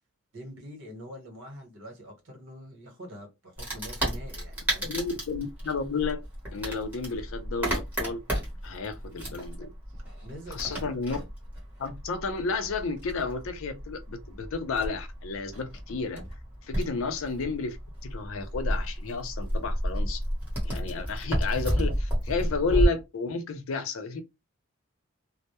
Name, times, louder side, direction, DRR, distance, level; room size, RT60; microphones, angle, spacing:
voice 1, 0.3-5.0 10.2-11.0 16.8-17.0, equal, 60° right, 1.0 m, -45 dB
Wood, 3.6-22.9, equal, 10° right, 0.9 m, -32 dB
voice 2, 4.8-6.2 6.5-8.2 8.6-9.7 10.5-11.2 11.8-16.2 16.6-17.8 18.0-20.2 20.6-24.2, left 4 dB, 65° left, 0.4 m, -32 dB
2.2 x 2.0 x 2.8 m
head